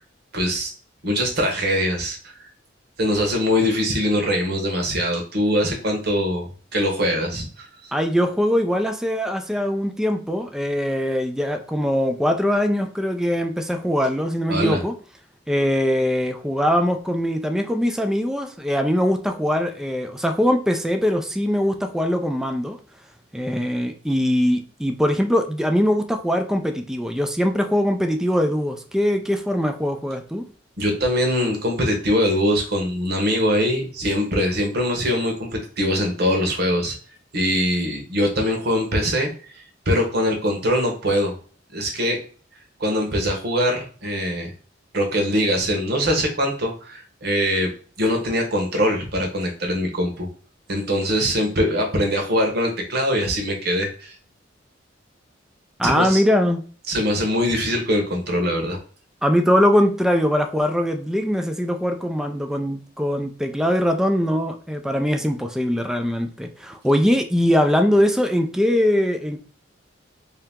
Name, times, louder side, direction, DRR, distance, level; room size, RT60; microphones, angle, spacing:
voice 1, 0.3-0.7 1.0-2.5 3.0-6.5 6.7-7.7 14.5-14.8 30.8-36.9 37.3-39.3 39.9-41.3 41.7-42.2 42.8-44.5 44.9-47.7 48.0-50.3 50.7-54.1 55.8-56.2 56.9-58.8, equal, 55° right, 2 dB, 1.1 m, -22 dB
voice 2, 7.9-14.9 15.5-22.8 23.3-30.5 55.8-56.6 59.2-69.4, equal, 5° right, 5 dB, 0.4 m, -21 dB
3.3 x 2.9 x 3.6 m, 0.41 s
head